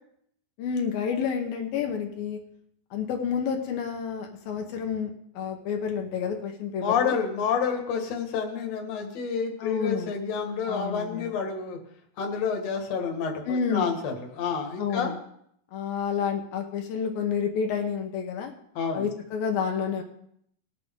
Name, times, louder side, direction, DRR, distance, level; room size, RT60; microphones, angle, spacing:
voice 1, 0.6-2.4 2.9-7.1 9.6-10.1 10.7-11.3 13.5-14.0 14.8-15.2 15.7-18.5 18.9-20.0, left 7 dB, 75° left, 3 dB, 2.8 m, -29 dB
voice 2, 6.8-11.8 12.2-15.1 18.8-19.1, left 6 dB, 55° left, 2 dB, 2.4 m, -29 dB
20.0 x 7.8 x 3.7 m, 0.70 s
omnidirectional pair, 4.2 m